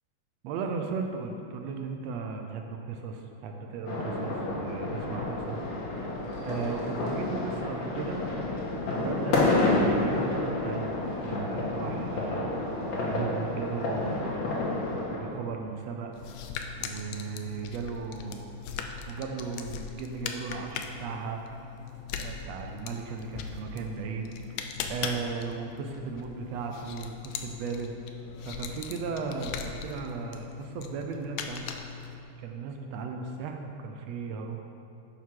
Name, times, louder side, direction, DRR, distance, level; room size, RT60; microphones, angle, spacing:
voice 1, 0.4-5.6 6.4-8.2 8.9-10.9 11.2-12.5 13.0-14.7 15.1-16.1 16.8-18.5 19.1-21.4 22.2-27.9 28.4-31.6 32.4-34.6, right 5 dB, 75° right, 3 dB, 1.6 m, -36 dB
sound 1, 3.9-15.2, left 2 dB, 65° left, 2.6 m, -29 dB
sound 2, 16.1-32.2, left 7 dB, 85° left, 1.4 m, -39 dB
11.5 x 6.0 x 4.6 m, 2.7 s
omnidirectional pair, 3.6 m